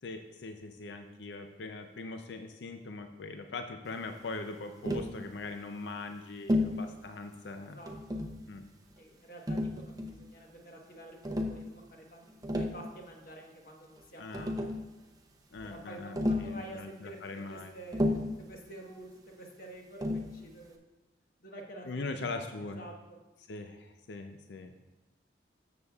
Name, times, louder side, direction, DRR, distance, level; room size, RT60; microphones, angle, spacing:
voice 1, 0.0-7.8 8.5-8.6 14.2-14.5 15.5-17.7 21.8-22.8 23.5-24.8, left 3 dB, 75° left, 6 dB, 0.5 m, -41 dB
Tap, 4.8-5.2 6.5-6.8 7.9-8.4 9.5-10.2 11.2-11.6 12.3-12.8 14.0-14.1 14.3-14.9 16.2-16.6 17.9-18.4 20.0-20.3, left 1 dB, 20° right, 0.6 m, -31 dB
voice 2, 7.7-8.2 9.0-11.8 12.1-12.3 12.5-14.7 15.6-17.2 17.5-19.1 19.4-20.8 21.4-23.2, right 1 dB, 50° left, 1 dB, 1.2 m, -49 dB
13.0 x 7.0 x 2.3 m, 1.1 s
head